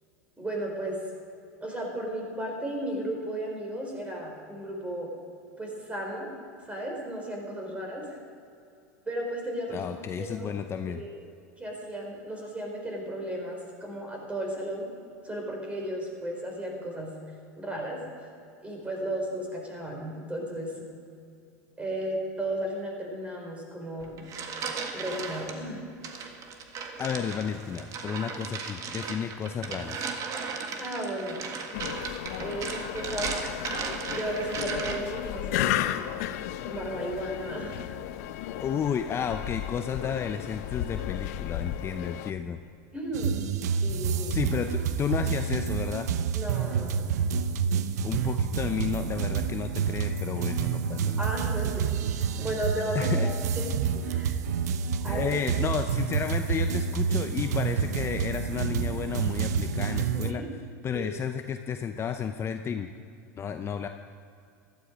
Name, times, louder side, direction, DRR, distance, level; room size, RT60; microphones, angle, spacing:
voice 1, 0.4-1.0 1.6-5.1 5.6-6.3 6.7-8.2 9.1-10.5 10.9-11.2 11.6-14.9 15.2-17.1 17.6-18.0 18.6-20.9 21.8-24.2 24.9-25.8 30.8-31.5 32.4-33.3 34.1-35.9 36.6-37.9 42.9-44.4 46.3-47.4 51.2-54.3 55.0-55.4 60.1-60.5 60.9-61.1, right 1 dB, 15° right, 0 dB, 4.4 m, -34 dB
voice 2, 9.7-11.0 27.0-30.1 38.6-42.6 44.3-46.1 48.0-51.3 52.9-53.3 55.1-60.4 60.8-62.9 63.4-63.9, left 7 dB, 30° left, 7 dB, 0.6 m, -32 dB
sound 1, 24.0-25.5 26.0-35.2, right 5 dB, 40° right, 1.7 m, -36 dB
sound 2, 31.7-42.3, left 12 dB, 65° left, 0.7 m, -34 dB
sound 3, 43.1-60.3, right 7 dB, 80° right, 0.8 m, -28 dB
15.5 x 13.0 x 5.2 m, 2.5 s
hypercardioid pair, 105°, 9 cm